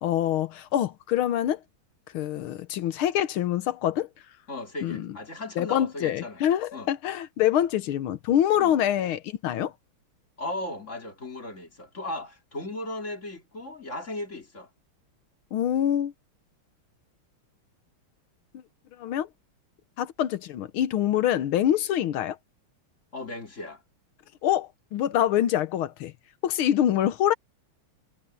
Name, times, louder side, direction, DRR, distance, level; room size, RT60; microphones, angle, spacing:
voice 1, 0.0-1.6 2.1-4.1 4.8-5.1 5.6-9.7 15.5-16.1 19.0-19.3 20.0-22.4 24.4-26.1 26.4-27.3, left 11 dB, 75° left, 1.7 m, -25 dB
voice 2, 4.5-6.4 6.7-6.9 8.6-8.8 10.4-14.7 23.1-23.8, left 2 dB, 35° left, 3.8 m, -36 dB
omnidirectional pair, 2.3 m